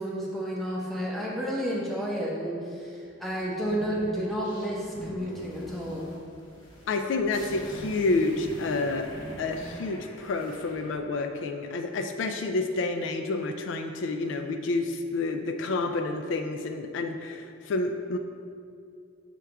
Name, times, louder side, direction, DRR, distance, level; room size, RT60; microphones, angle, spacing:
voice 1, 0.0-6.1, equal, ahead, -5 dB, 0.9 m, -31 dB
sound 1, 3.5-10.9, equal, 90° left, 1.1 m, -43 dB
voice 2, 6.9-9.1 9.4-18.2, left 3 dB, 70° left, 6 dB, 0.3 m, -29 dB
6.1 x 3.4 x 4.5 m, 2.4 s
head